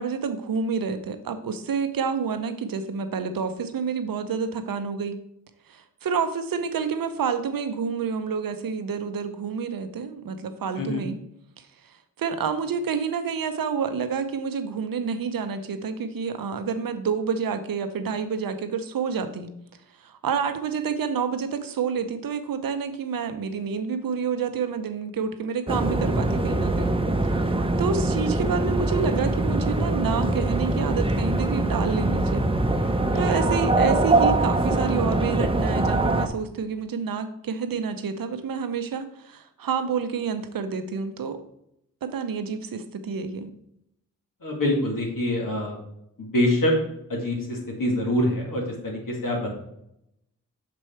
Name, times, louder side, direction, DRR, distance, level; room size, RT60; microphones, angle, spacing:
voice 1, 0.0-5.2 5.7-11.2 12.2-19.5 20.0-26.9 27.4-27.5 27.8-32.5 33.1-41.4 42.0-43.5, right 6 dB, 85° right, 10 dB, 0.7 m, -28 dB
sound 1, 25.7-36.3, right 2 dB, 15° right, 0.7 m, -23 dB
voice 2, 33.1-33.5 44.4-45.8 46.2-46.7 47.1-49.5, left 1 dB, 75° left, -1 dB, 2.2 m, -25 dB
6.1 x 4.8 x 4.4 m, 0.78 s
cardioid pair, 45°, 33 cm